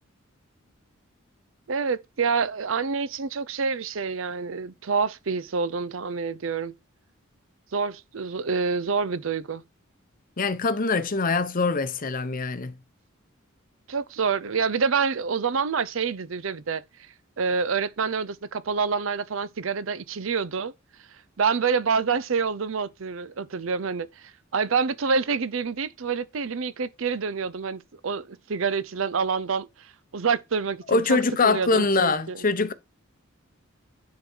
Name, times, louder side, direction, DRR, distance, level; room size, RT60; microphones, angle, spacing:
voice 1, 1.7-6.7 7.7-9.6 13.9-16.8 17.4-20.7 21.4-32.4, right 5 dB, 65° right, 0.6 m, -27 dB
voice 2, 10.4-12.7 30.9-32.7, left 3 dB, 40° left, 0.8 m, -23 dB
9.5 x 3.9 x 4.5 m
head